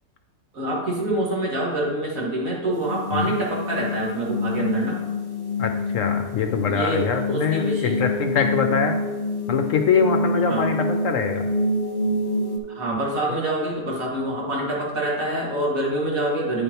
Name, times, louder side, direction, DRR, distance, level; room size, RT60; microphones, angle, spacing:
voice 1, 0.5-5.0 6.7-8.0 10.5-10.7 12.7-16.6, right 1 dB, 60° right, -4 dB, 2.3 m, -26 dB
sound 1, 2.7-12.6, left 2 dB, 45° left, 1.2 m, -27 dB
voice 2, 5.6-9.0 9.5-11.4, left 6 dB, 70° left, 6 dB, 0.8 m, -23 dB
9.5 x 6.7 x 2.9 m, 1.2 s
omnidirectional pair, 1.6 m